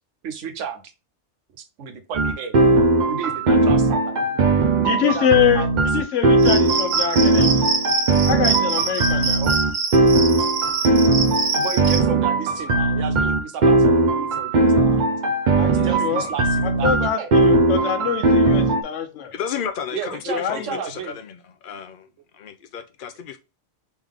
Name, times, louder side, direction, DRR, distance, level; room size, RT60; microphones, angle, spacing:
voice 1, 0.2-0.8 1.6-2.6 3.1-6.0 9.4-9.6 11.5-15.1 15.6-17.3 19.9-21.2, right 7 dB, 85° right, 1.0 m, -33 dB
sound 1, 2.1-18.8, right 2 dB, 50° right, 0.6 m, -19 dB
voice 2, 4.8-5.7 5.9-7.7 8.3-9.4 15.6-16.2 16.6-19.3 20.3-20.8, left 9 dB, 80° left, 1.1 m, -24 dB
Cricket, 6.4-12.0, right 5 dB, 65° right, 1.1 m, -25 dB
voice 3, 19.3-20.2 20.5-20.9 21.2-21.4 21.6-22.1 22.4-23.4, left 8 dB, 55° left, 0.7 m, -32 dB
3.6 x 3.2 x 3.5 m
omnidirectional pair, 1.2 m